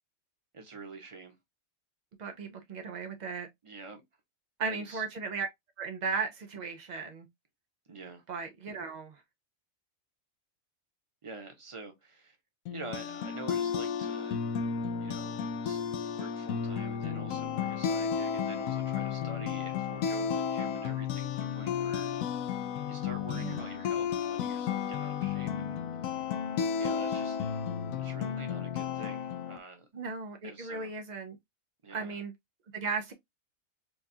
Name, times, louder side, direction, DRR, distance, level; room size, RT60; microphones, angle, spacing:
voice 1, 0.5-1.4 3.6-4.0 4.7-5.0 7.9-8.2 11.2-12.4 12.7-14.4 15.0-15.8 16.1-22.1 22.9-26.1 26.8-27.4 28.0-29.9 30.4-30.9 31.8-32.2, right 3 dB, 25° right, 0.8 m, -46 dB
voice 2, 2.2-3.5 4.6-5.5 5.8-7.3 8.3-9.2 23.3-23.7 29.9-31.4 31.9-32.3 32.7-33.1, right 5 dB, 75° right, 0.4 m, -36 dB
sound 1, 12.7-29.6, left 7 dB, 80° left, 1.0 m, -33 dB
4.6 x 2.3 x 2.6 m
omnidirectional pair, 1.4 m